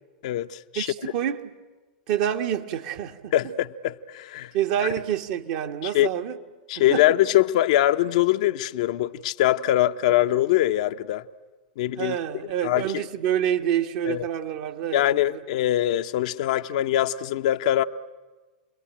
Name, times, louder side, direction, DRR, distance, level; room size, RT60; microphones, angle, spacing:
voice 1, 0.2-1.1 3.3-4.5 5.9-6.1 6.7-11.2 11.8-12.2 12.6-13.0 14.0-14.3 14.9-17.8, left 13 dB, 55° left, 0.8 m, -23 dB
voice 2, 0.8-1.5 2.1-3.3 4.5-6.4 6.9-7.1 12.0-15.0 15.3-15.4, right 10 dB, 50° right, 1.7 m, -27 dB
30.0 x 22.0 x 9.0 m
figure-of-eight pair, 95°, 4 cm